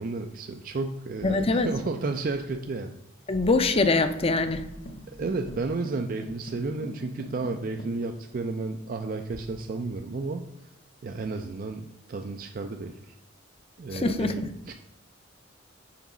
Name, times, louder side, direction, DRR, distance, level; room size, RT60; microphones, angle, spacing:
voice 1, 0.0-3.0 5.1-10.4 11.0-13.1 13.8-14.7, right 3 dB, 45° right, 5 dB, 0.4 m, -32 dB
voice 2, 1.2-1.7 3.3-4.6 13.9-14.4, left 3 dB, 30° left, 10 dB, 0.5 m, -23 dB
Jungle Guitar Drum, 3.8-8.0, equal, 55° left, 1.0 m, -44 dB
5.9 x 4.1 x 5.9 m, 0.88 s
head